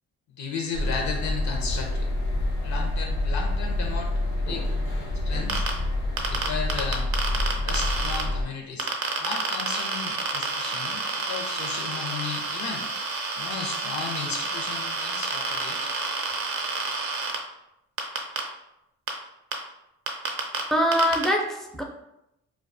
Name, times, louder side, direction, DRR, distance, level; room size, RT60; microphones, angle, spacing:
voice 1, 0.4-2.1 2.6-4.7 5.3-5.6 6.3-7.1 7.6-8.9 9.2-12.9 13.4-15.9, left 5 dB, 70° left, 2 dB, 0.6 m, -34 dB
sound 1, 0.7-8.4, left 1 dB, 90° left, 0.9 m, -27 dB
sound 2, 5.5-5.7 6.2-8.2 8.8-17.4 18.0-18.4 19.1-19.2 19.5-19.6 20.1-20.6 20.9-21.2, right 4 dB, 50° right, 0.5 m, -29 dB
voice 2, 20.7-21.8, equal, ahead, 0 dB, 0.4 m, -23 dB
2.3 x 2.2 x 2.5 m, 0.84 s
cardioid pair, 90°, 30 cm